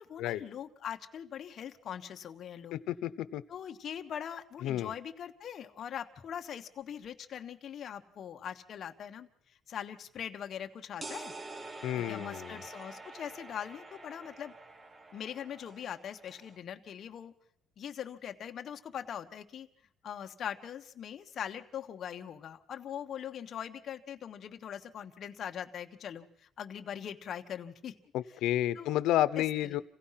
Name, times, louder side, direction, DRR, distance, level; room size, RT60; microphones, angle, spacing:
voice 1, 0.0-2.8 3.5-9.3 9.7-11.3 11.9-14.5 15.1-17.3 17.8-19.7 20.0-28.0 28.7-28.9 29.4-29.8, left 9 dB, 40° left, 6 dB, 1.2 m, -41 dB
voice 2, 2.7-3.4 4.6-4.9 11.8-12.6 28.1-29.8, left 13 dB, 85° left, 14 dB, 0.8 m, -31 dB
sound 1, 11.0-16.6, right 2 dB, 15° right, 0.8 m, -47 dB
28.0 x 16.5 x 5.8 m, 0.73 s
cardioid pair, 175°, 0 cm